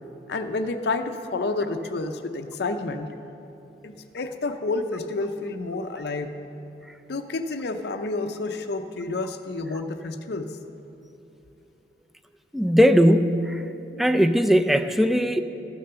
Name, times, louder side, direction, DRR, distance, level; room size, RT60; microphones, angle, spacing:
voice 1, 0.3-3.1 3.8-6.4 7.1-10.6, left 3 dB, 60° left, 7 dB, 0.5 m, -29 dB
voice 2, 12.5-13.7 14.0-15.4, equal, ahead, 8 dB, 0.3 m, -19 dB
14.0 x 6.8 x 6.7 m, 2.9 s
head